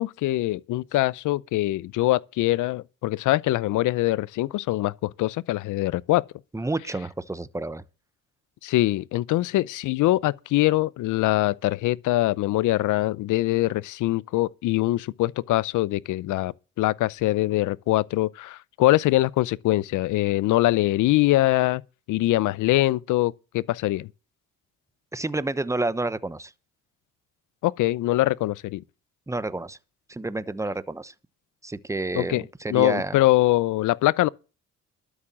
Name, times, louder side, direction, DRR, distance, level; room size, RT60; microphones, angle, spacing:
voice 1, 0.0-6.2 8.6-21.8 22.1-24.1 27.6-28.8 32.2-32.4 32.7-34.3, left 17 dB, 85° left, 0.7 m, -23 dB
voice 2, 6.5-7.8 25.1-26.5 29.3-29.8 30.1-31.1 31.6-33.2, right 2 dB, 10° right, 1.0 m, -29 dB
12.5 x 7.1 x 7.3 m
cardioid pair, 90°, 30 cm